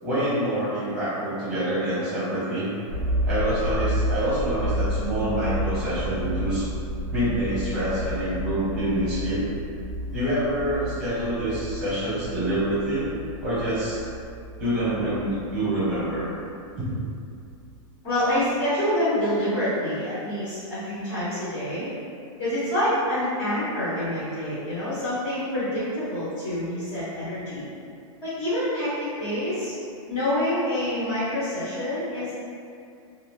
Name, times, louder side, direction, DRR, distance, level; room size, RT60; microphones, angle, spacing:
voice 1, 0.0-2.7 3.3-6.7 7.1-9.4 10.1-13.1 13.4-14.1 14.6-16.3 16.8-16.9, right 1 dB, 5° right, -11 dB, 0.9 m, -26 dB
sound 1, 2.9-17.1 17.7-17.8, equal, 45° right, 0.5 m, -31 dB
voice 2, 18.0-21.9 22.4-27.7 28.2-28.9 29.2-29.7 30.1-32.3, left 1 dB, 40° left, -13 dB, 0.9 m, -27 dB
2.4 x 2.4 x 3.1 m, 2.5 s
supercardioid pair, 175°, 17 cm